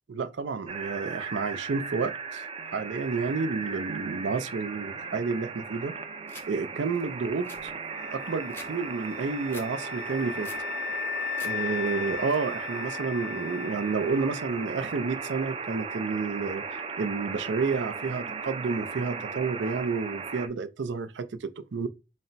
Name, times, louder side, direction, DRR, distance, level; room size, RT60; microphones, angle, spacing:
voice 1, 0.1-2.4 2.7-5.9 6.5-7.7 8.1-10.5 11.4-21.9, right 4 dB, 85° right, 0.5 m, -30 dB
sound 1, 0.7-20.5, right 5 dB, 30° right, 0.4 m, -37 dB
sound 2, 6.3-6.5 6.9-7.0 7.3-8.7 9.0-9.7 10.1-10.7 11.1-11.5 11.8-12.3, left 2 dB, 10° left, 0.6 m, -46 dB
sound 3, 7.9-14.7, left 10 dB, 55° left, 0.3 m, -37 dB
4.1 x 2.1 x 3.9 m
head